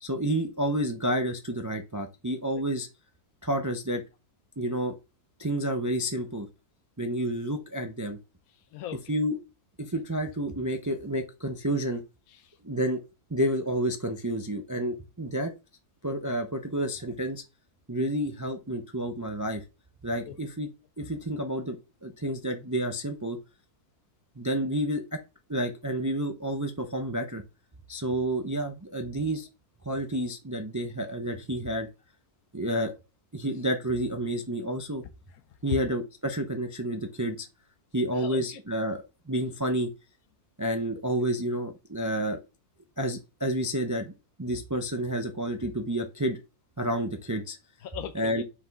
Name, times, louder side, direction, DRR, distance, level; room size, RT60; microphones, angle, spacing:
voice 1, 0.0-2.9 3.4-4.0 4.6-4.9 5.4-6.5 7.0-8.2 9.1-9.4 9.8-12.0 12.6-13.0 13.3-15.5 16.0-17.4 17.9-19.6 20.0-20.7 21.0-23.4 24.4-25.2 25.5-27.4 27.9-29.5 29.8-31.9 32.5-32.9 33.3-35.0 35.6-37.5 37.9-39.9 40.6-42.4 43.0-46.4 46.8-47.6 48.1-48.4, right 1 dB, 25° right, 0.4 m, -30 dB
voice 2, 8.5-9.0 12.3-12.6 20.3-20.4 35.3-35.4 35.6-35.7 38.1-38.6 47.8-48.4, left 10 dB, 75° left, 1.0 m, -38 dB
6.1 x 4.8 x 3.5 m
omnidirectional pair, 1.6 m